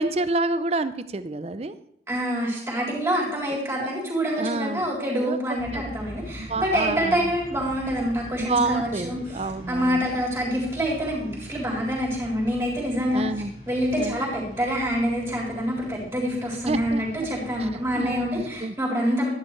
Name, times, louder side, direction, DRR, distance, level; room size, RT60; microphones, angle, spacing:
voice 1, 0.0-1.7 3.8-3.9 4.4-4.8 5.2-5.4 5.7-5.9 6.4-7.3 8.4-10.1 13.1-13.5 14.0-14.2 16.7-17.3 17.6-17.7 18.0-18.7, right 3 dB, 35° right, 12 dB, 0.5 m, -28 dB
voice 2, 2.1-13.2 13.7-19.3, equal, 15° right, -4 dB, 3.7 m, -26 dB
sound 1, 5.6-18.6, equal, 50° left, 3.0 m, -42 dB
11.5 x 10.5 x 3.2 m, 0.72 s
head